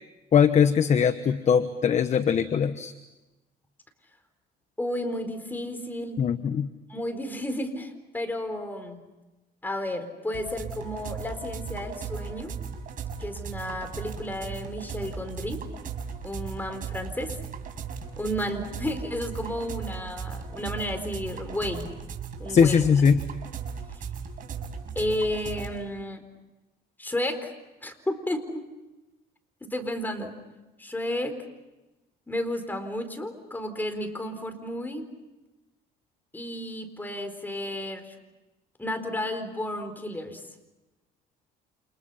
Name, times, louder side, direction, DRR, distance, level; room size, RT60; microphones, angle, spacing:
voice 1, 0.3-2.9 6.2-6.7 22.5-23.2, left 7 dB, 45° left, 10 dB, 1.3 m, -21 dB
voice 2, 4.8-6.2 6.9-9.0 9.6-12.5 13.2-15.6 16.2-17.4 18.2-21.9 22.4-22.8 23.9-24.0 24.9-26.2 27.0-27.5 27.8-28.7 29.6-30.4 30.8-31.4 32.3-35.1 36.3-38.1 38.8-40.5, left 1 dB, 10° left, 6 dB, 4.4 m, -32 dB
sound 1, 10.3-25.7, right 6 dB, 55° right, 5.7 m, -37 dB
30.0 x 28.5 x 5.7 m, 1.1 s
cardioid pair, 110°, 17 cm